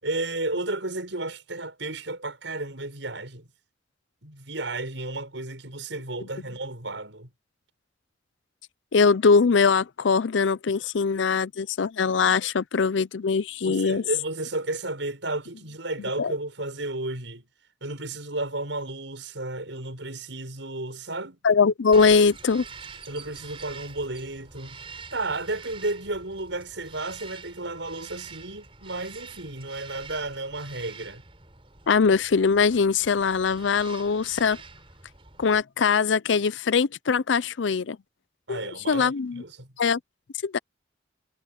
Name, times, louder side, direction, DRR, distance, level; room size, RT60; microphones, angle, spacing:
voice 1, 0.0-3.5 4.2-7.3 13.6-17.5 17.8-21.4 23.1-24.8 25.1-31.2 38.5-39.7, right 2 dB, 85° right, 6.6 m, -33 dB
voice 2, 8.9-14.0 16.2-16.3 21.4-22.6 31.9-34.6 35.4-38.0 38.5-38.6 38.9-39.4 39.8-40.0 40.4-40.6, left 5 dB, 85° left, 0.5 m, -22 dB
Bird vocalization bird call bird song, 21.9-35.6, right 5 dB, 30° right, 4.3 m, -46 dB
head